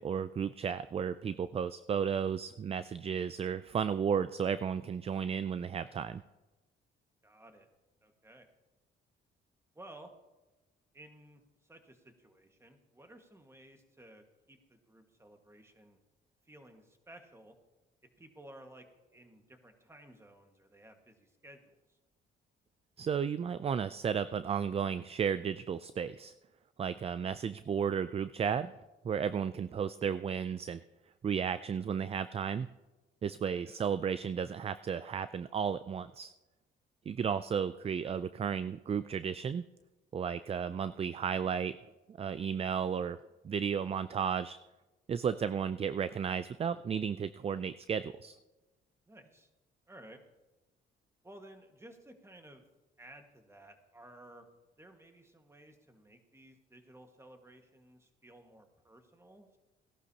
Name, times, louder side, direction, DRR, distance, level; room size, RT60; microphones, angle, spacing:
voice 1, 0.0-6.2 23.0-26.3 26.8-28.7 29.0-30.8 31.2-32.7 33.2-36.3 37.1-39.6 40.1-41.8 42.1-43.2 43.4-44.6 45.1-48.4, right 7 dB, 30° right, 14 dB, 0.3 m, -33 dB
voice 2, 7.2-7.7 8.0-8.5 9.7-10.1 10.9-16.0 16.4-17.5 18.2-18.8 19.1-22.0 29.7-29.9 33.6-33.8 38.0-38.2 49.1-49.5 49.9-50.2 51.2-52.6 53.0-54.5 54.8-59.6, right 1 dB, 15° right, 5 dB, 1.6 m, -55 dB
16.5 x 11.5 x 2.8 m, 1.1 s
cardioid pair, 90°, 20 cm